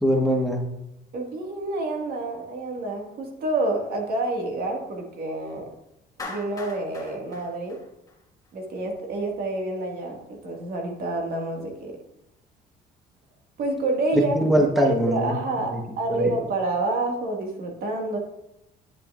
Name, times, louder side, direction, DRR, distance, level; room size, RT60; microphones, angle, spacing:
voice 1, 0.0-0.6 14.1-15.4 15.7-15.8 16.1-16.3, equal, ahead, 1 dB, 1.1 m, -22 dB
voice 2, 1.1-5.6 6.2-7.8 8.5-11.9 13.6-14.4 14.8-18.2, right 2 dB, 65° right, 1 dB, 1.9 m, -28 dB
Clapping, 6.2-8.5, left 3 dB, 20° left, 1.8 m, -39 dB
10.0 x 6.6 x 2.5 m, 0.84 s
cardioid pair, 110°, 17 cm